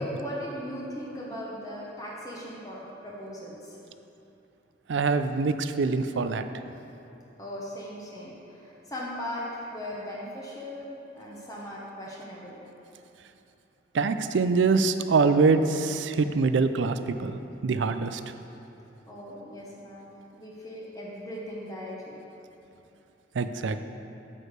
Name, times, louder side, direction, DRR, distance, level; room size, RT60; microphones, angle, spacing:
voice 1, 0.0-3.8 7.4-12.6 19.1-22.2, equal, 20° left, -5 dB, 1.0 m, -38 dB
voice 2, 4.9-6.4 13.9-18.2 23.3-23.8, right 4 dB, 80° right, 10 dB, 0.4 m, -24 dB
8.5 x 5.0 x 6.6 m, 2.9 s
head